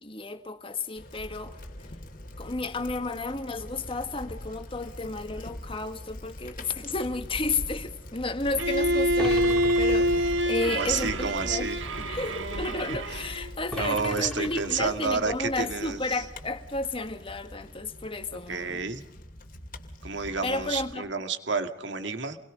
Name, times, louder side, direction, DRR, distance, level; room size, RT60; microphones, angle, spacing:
voice 1, 0.0-1.6 2.4-11.7 12.1-18.8 20.4-21.1, left 3 dB, 30° left, 1.9 m, -32 dB
Bicycle, 1.0-20.9, left 1 dB, 45° left, 2.5 m, -41 dB
Bowed string instrument, 8.6-13.5, equal, 90° right, 1.8 m, -26 dB
sound 1, 9.2-10.6 13.7-15.2, equal, 5° left, 2.6 m, -38 dB
voice 2, 10.7-11.9 13.7-16.2 18.3-19.0 20.0-22.4, right 4 dB, 65° right, 2.2 m, -30 dB
28.5 x 22.0 x 5.2 m
head